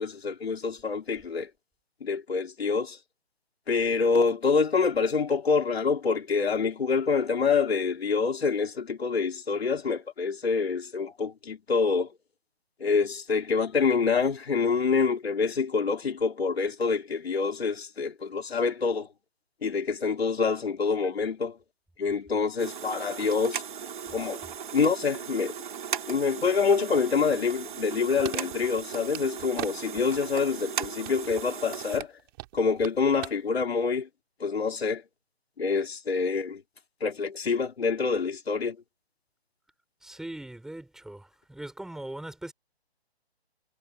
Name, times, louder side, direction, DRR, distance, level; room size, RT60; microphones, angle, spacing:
voice 1, 0.0-1.5 2.0-3.0 3.7-12.1 12.8-19.1 19.6-21.6 22.0-23.6 24.1-24.4 24.7-25.5 26.1-32.1 32.5-34.1 34.4-35.0 35.6-36.6 37.0-38.8, left 5 dB, 65° left, 3.9 m, -26 dB
sound 1, 22.6-32.0, right 8 dB, 50° right, 2.7 m, -37 dB
sound 2, 27.3-29.7 30.0-30.5 30.8-33.3 33.6-33.7, right 21 dB, 20° right, 3.1 m, -40 dB
voice 2, 40.0-42.5, right 1 dB, ahead, 6.1 m, -40 dB
hypercardioid pair, 155°, 33 cm